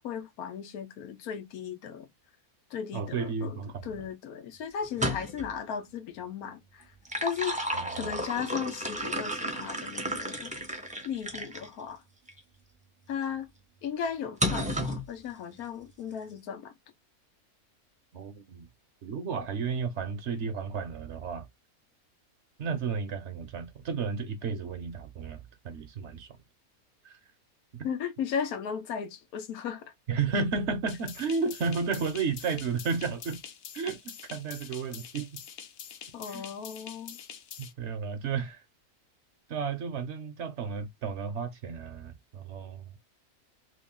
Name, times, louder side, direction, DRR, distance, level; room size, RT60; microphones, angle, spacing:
voice 1, 0.0-2.1 2.7-6.8 7.2-7.6 7.9-10.5 11.0-12.0 13.1-13.5 13.8-16.7 27.8-29.9 36.1-37.2, left 7 dB, 90° left, 1.2 m, -36 dB
voice 2, 2.9-4.0 7.7-8.1 18.1-18.7 19.0-21.5 22.6-26.3 27.0-27.2 27.7-27.9 30.1-33.4 33.7-35.4 36.3-36.4 37.6-38.6 39.5-42.9, right 5 dB, 60° right, 0.9 m, -33 dB
sound 1, 4.8-5.5 6.8-11.7 12.3-12.4 14.4-15.1, equal, 10° right, 0.5 m, -32 dB
sound 2, 30.9-37.7, left 8 dB, 60° left, 0.6 m, -45 dB
3.1 x 2.5 x 3.6 m
omnidirectional pair, 1.5 m